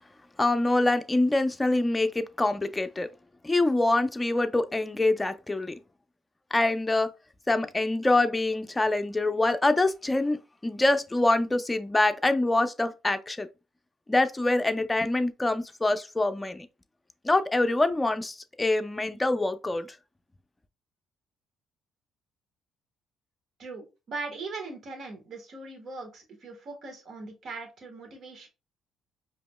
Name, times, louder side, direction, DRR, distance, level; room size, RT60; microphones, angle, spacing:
voice 1, 0.4-3.1 3.4-5.7 6.5-7.1 7.5-10.4 10.6-13.5 14.1-16.7 17.2-19.9, left 2 dB, 15° left, 0.6 m, -25 dB
voice 2, 23.6-28.5, right 3 dB, 55° right, 1.5 m, -40 dB
5.1 x 3.0 x 2.2 m
cardioid pair, 80°, 0 cm